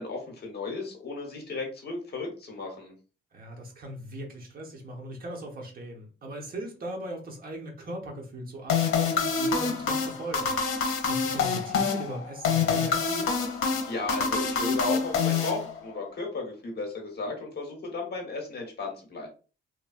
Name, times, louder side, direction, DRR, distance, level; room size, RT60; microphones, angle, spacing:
voice 1, 0.0-2.9 13.9-19.3, left 3 dB, 50° left, 1.1 m, -34 dB
voice 2, 3.3-10.5 10.8-13.4, right 1 dB, 45° right, 0.8 m, -39 dB
sound 1, 8.7-16.1, left 5 dB, 85° left, 0.6 m, -27 dB
3.0 x 2.2 x 2.4 m
cardioid pair, 125°, 21 cm